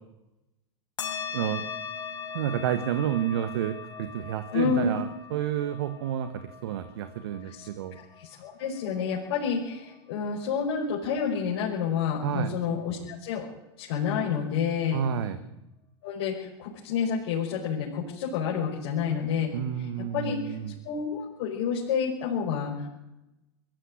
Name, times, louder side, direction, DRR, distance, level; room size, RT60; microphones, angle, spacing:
sound 1, 1.0-9.9, left 6 dB, 30° left, 5.5 m, -40 dB
voice 1, 1.3-1.7 2.3-6.3 6.6-8.0 12.2-12.5 14.9-15.4 19.5-20.7, right 10 dB, 65° right, 10 dB, 1.6 m, -30 dB
voice 2, 4.5-5.0 7.5-7.7 8.0-13.5 13.8-15.0 16.0-19.9 20.1-20.6 20.8-22.9, left 6 dB, 60° left, -4 dB, 5.5 m, -29 dB
21.5 x 14.5 x 9.9 m, 0.94 s
hypercardioid pair, 100°, 14 cm